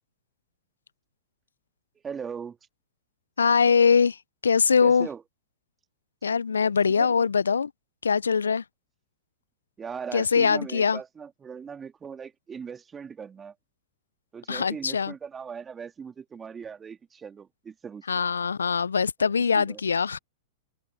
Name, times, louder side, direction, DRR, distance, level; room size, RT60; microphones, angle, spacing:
voice 1, 2.0-2.6 4.8-5.2 7.0-7.1 9.8-13.5 14.3-18.0 19.5-19.8, right 6 dB, 20° right, 2.3 m, -39 dB
voice 2, 3.4-4.2 4.4-5.1 6.2-7.7 8.0-8.6 10.1-11.0 14.5-15.1 18.1-20.2, left 6 dB, 85° left, 0.3 m, -22 dB
hypercardioid pair, 105°, 0 cm